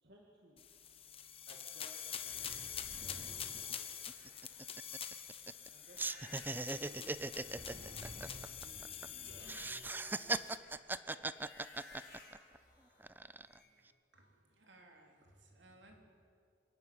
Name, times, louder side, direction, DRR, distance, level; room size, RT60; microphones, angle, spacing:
voice 1, 0.0-0.6 1.5-3.9 5.7-7.4 8.3-10.5 10.8-11.3, right 1 dB, 60° right, -1 dB, 2.3 m, -63 dB
sound 1, 0.6-10.6, left 8 dB, 30° left, 1.2 m, -46 dB
sound 2, 1.9-10.2 10.5-13.8, left 1 dB, 60° left, 6.6 m, -56 dB
sound 3, 3.2-3.3 3.6-3.7 4.1-5.7 6.0-9.1 9.4-12.6 13.0-13.6, right 2 dB, 10° right, 0.4 m, -40 dB
voice 2, 14.1-16.0, right 2 dB, 85° right, 2 dB, 3.5 m, -62 dB
26.0 x 11.0 x 9.4 m, 2.3 s
head